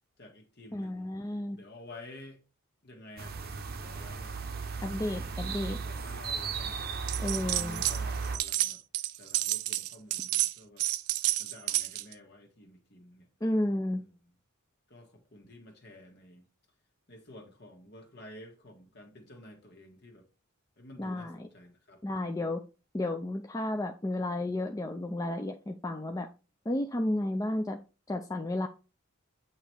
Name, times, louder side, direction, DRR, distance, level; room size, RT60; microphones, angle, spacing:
voice 1, 0.2-1.1 1.5-2.4 2.8-3.4 3.8-4.3 5.8-6.8 7.3-8.8 9.2-10.8 11.4-13.3 14.9-16.4 17.1-20.2 20.8-22.0, left 1 dB, 45° left, 1.7 m, -51 dB
voice 2, 0.7-1.6 4.8-5.8 7.2-7.8 13.4-14.0 21.0-21.5 22.0-22.6 22.9-26.3 26.7-27.8 28.1-28.7, left 1 dB, 15° left, 0.4 m, -32 dB
sound 1, 3.2-8.4, right 5 dB, 45° right, 0.7 m, -36 dB
Counting Me Shillings, 7.1-8.0 8.2-12.1, right 16 dB, 85° right, 0.4 m, -30 dB
8.5 x 3.0 x 4.7 m
head